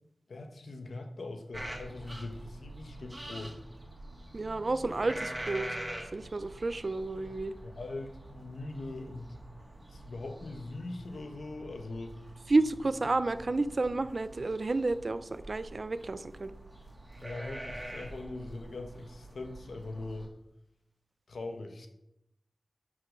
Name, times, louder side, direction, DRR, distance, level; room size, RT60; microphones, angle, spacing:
voice 1, 0.3-3.6 7.6-9.4 9.9-12.2 17.2-20.3 21.3-21.9, left 2 dB, 85° left, 6 dB, 1.4 m, -41 dB
sound 1, 1.5-20.3, right 1 dB, 20° right, 2.3 m, -45 dB
voice 2, 4.3-5.7 6.1-7.5 12.5-16.5, right 3 dB, 50° right, 13 dB, 0.6 m, -30 dB
11.5 x 5.7 x 6.5 m, 0.83 s
wide cardioid pair, 85°, 0 cm